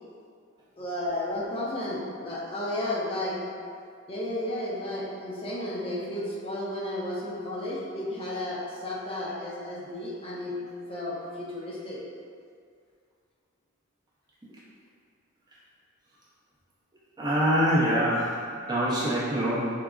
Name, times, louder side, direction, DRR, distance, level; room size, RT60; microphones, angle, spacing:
voice 1, 0.8-3.4 4.1-12.0, left 1 dB, 30° left, -6 dB, 0.5 m, -33 dB
voice 2, 17.2-19.7, equal, 20° right, -8 dB, 0.6 m, -25 dB
3.6 x 2.0 x 2.3 m, 2.2 s
head